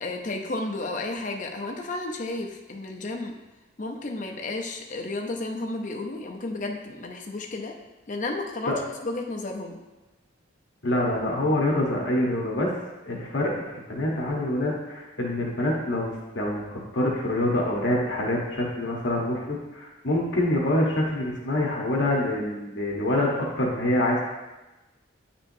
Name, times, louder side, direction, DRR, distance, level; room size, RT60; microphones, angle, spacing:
voice 1, 0.0-3.3 3.8-7.7 8.1-8.7 9.0-9.8, left 2 dB, 40° left, 2 dB, 0.6 m, -32 dB
voice 2, 10.8-12.7 13.1-24.2, left 1 dB, 65° left, -2 dB, 1.0 m, -26 dB
9.1 x 4.3 x 2.6 m, 1.1 s
head